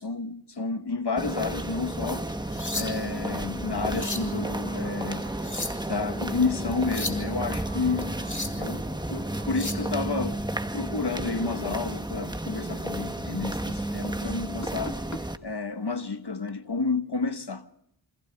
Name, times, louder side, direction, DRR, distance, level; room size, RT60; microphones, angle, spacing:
voice 1, 0.0-2.3 2.7-5.3 5.8-8.1 8.5-10.4 10.7-14.9 15.4-17.7, left 4 dB, 60° left, 1.4 m, -30 dB
sound 1, 1.2-15.4, right 1 dB, 10° right, 1.2 m, -32 dB
sound 2, 1.6-10.1, right 3 dB, 70° right, 3.7 m, -49 dB
sound 3, 2.3-3.2 3.7-4.3 5.2-5.9 6.7-7.3 8.0-8.7 9.3-9.9 11.9-12.1 12.6-12.8 13.3-13.4 14.6-15.2 16.3-16.5, left 2 dB, 40° left, 2.6 m, -36 dB
28.0 x 27.0 x 3.5 m
wide cardioid pair, 50°, 46 cm